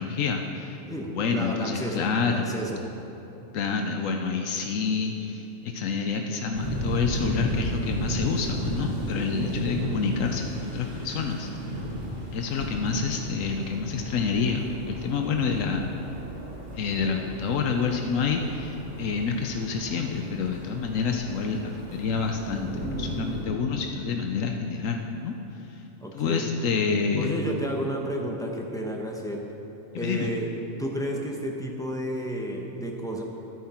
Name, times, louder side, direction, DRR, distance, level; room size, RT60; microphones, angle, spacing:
voice 1, 0.0-0.8 1.1-2.5 3.5-11.5 12.3-15.9 16.7-25.8 26.1-27.3 29.9-30.3, left 5 dB, 85° left, 3 dB, 1.1 m, -28 dB
voice 2, 0.8-2.9 9.1-9.6 26.0-26.5 27.2-29.4 29.9-30.5 30.8-33.2, equal, 5° left, 0 dB, 0.9 m, -32 dB
sound 1, 6.5-23.4, right 1 dB, 70° right, 2.1 m, -34 dB
12.5 x 9.3 x 4.4 m, 2.9 s
omnidirectional pair, 1.3 m